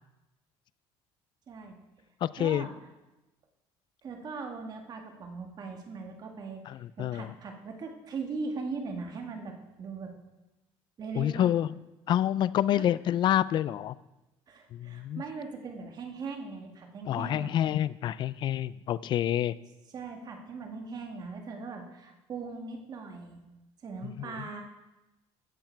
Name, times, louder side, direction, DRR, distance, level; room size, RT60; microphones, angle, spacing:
voice 1, 1.5-1.8 2.4-2.7 4.0-10.1 11.0-11.6 12.7-12.8 14.5-17.5 19.9-23.4 23.8-24.6, right 4 dB, 35° right, 3 dB, 1.8 m, -40 dB
voice 2, 2.2-2.7 6.7-7.3 11.2-11.7 12.1-14.0 14.7-15.2 17.1-19.6 24.0-24.5, left 11 dB, 45° left, 18 dB, 0.3 m, -28 dB
14.0 x 8.0 x 4.5 m, 1.0 s
cardioid pair, 140°, 11 cm